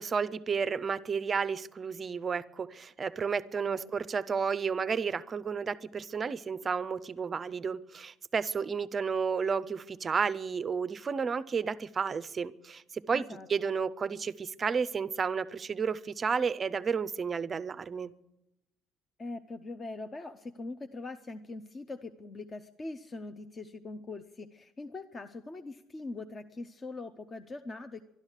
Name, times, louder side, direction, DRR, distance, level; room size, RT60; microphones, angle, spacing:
voice 1, 0.0-18.1, right 6 dB, 25° right, 16 dB, 0.5 m, -32 dB
voice 2, 13.1-13.5 19.2-28.0, left 3 dB, 25° left, 10 dB, 0.5 m, -42 dB
12.0 x 12.0 x 8.1 m, 0.87 s
cardioid pair, 160°, 0 cm